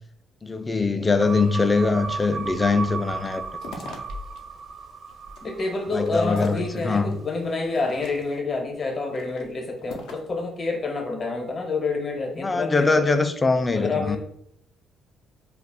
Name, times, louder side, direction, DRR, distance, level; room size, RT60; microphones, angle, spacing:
voice 1, 0.4-3.4 5.9-7.2 12.4-14.2, left 3 dB, 20° left, 0.3 m, -22 dB
sound 1, 1.2-7.6, right 4 dB, 60° right, 0.5 m, -36 dB
sound 2, 3.2-4.4 4.8-7.1 7.6-8.5 9.0-10.4, left 2 dB, 75° left, 0.5 m, -42 dB
voice 2, 5.4-13.2 13.7-14.2, left 3 dB, 45° left, 0.7 m, -28 dB
2.3 x 2.0 x 3.5 m
supercardioid pair, 75°, 0 cm